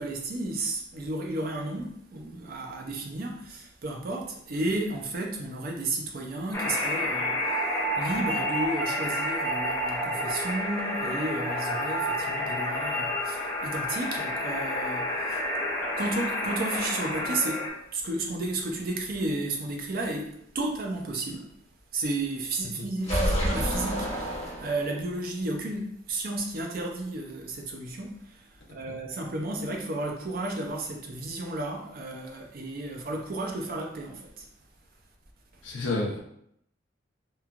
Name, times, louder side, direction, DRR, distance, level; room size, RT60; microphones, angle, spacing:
voice 1, 0.0-15.4 16.0-21.5 21.9-34.5, right 2 dB, 50° right, 0.5 m, -33 dB
sound 1, 6.5-17.7, equal, 15° left, 0.4 m, -29 dB
sound 2, 23.0-25.1, equal, 35° left, 1.0 m, -28 dB
voice 2, 35.6-36.2, left 2 dB, 70° left, 0.6 m, -30 dB
3.0 x 2.3 x 2.4 m
head